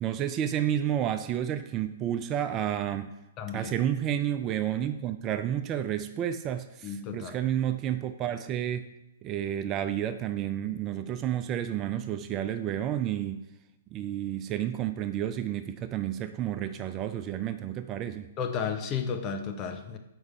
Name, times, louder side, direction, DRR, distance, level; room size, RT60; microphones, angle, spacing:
voice 1, 0.0-3.1 3.5-8.9 9.2-13.4 13.9-18.3, right 10 dB, 25° right, 10 dB, 0.3 m, -30 dB
voice 2, 3.4-3.7 6.8-7.3 18.4-20.0, left 6 dB, 30° left, 5 dB, 0.7 m, -33 dB
4.8 x 4.6 x 5.5 m, 0.92 s
figure-of-eight pair, 115°, 0 cm